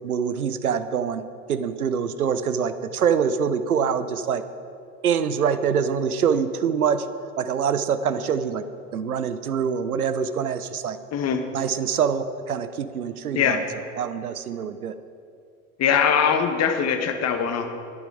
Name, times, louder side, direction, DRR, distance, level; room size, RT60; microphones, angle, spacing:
voice 1, 0.0-4.4 5.0-7.0 7.4-8.6 8.9-11.0 11.5-14.9, right 7 dB, 80° right, 12 dB, 0.8 m, -25 dB
voice 2, 15.8-17.7, left 7 dB, 35° left, 7 dB, 1.6 m, -21 dB
22.0 x 9.1 x 4.9 m, 2.4 s
figure-of-eight pair, 75°, 44 cm